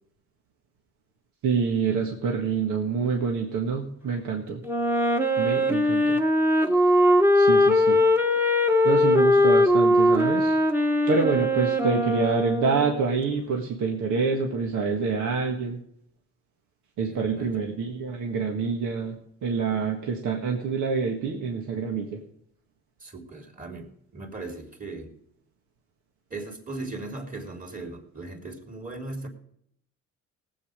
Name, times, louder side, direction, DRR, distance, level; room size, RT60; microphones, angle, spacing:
voice 1, 1.4-4.6 5.4-6.2 7.3-8.0 8.8-10.6 11.1-15.8 17.0-22.2, right 5 dB, 80° right, 1 dB, 1.8 m, -27 dB
Wind instrument woodwind instrument, 4.6-13.0, left 1 dB, 5° right, 1.3 m, -21 dB
voice 2, 17.0-17.5 23.0-25.1 26.3-29.3, right 2 dB, 30° right, 3 dB, 3.3 m, -38 dB
18.5 x 8.2 x 5.1 m, 0.73 s
cardioid pair, 90°, 30 cm